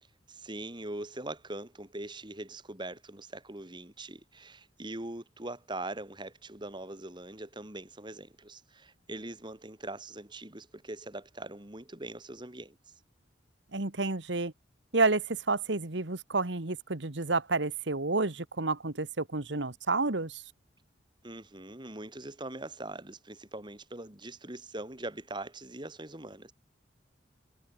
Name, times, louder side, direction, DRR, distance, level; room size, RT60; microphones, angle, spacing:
voice 1, 0.3-12.8 21.2-26.5, right 2 dB, 25° right, 2.4 m, -42 dB
voice 2, 13.7-14.5 14.9-20.4, right 3 dB, 65° right, 1.7 m, -30 dB
head